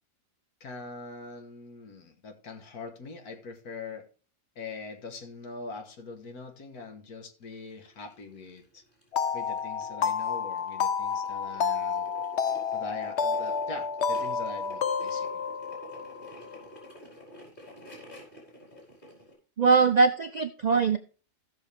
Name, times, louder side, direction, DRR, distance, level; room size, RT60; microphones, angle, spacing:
voice 1, 0.6-4.1 4.6-8.8 9.3-12.1 12.7-15.5 20.7-20.8, left 3 dB, 85° left, 2.0 m, -42 dB
sound 1, 7.4-19.3, equal, 35° left, 5.1 m, -50 dB
sound 2, 9.1-16.6, left 6 dB, 55° left, 0.9 m, -30 dB
voice 2, 19.6-21.0, right 4 dB, 70° right, 0.4 m, -22 dB
16.0 x 6.4 x 3.5 m
omnidirectional pair, 1.6 m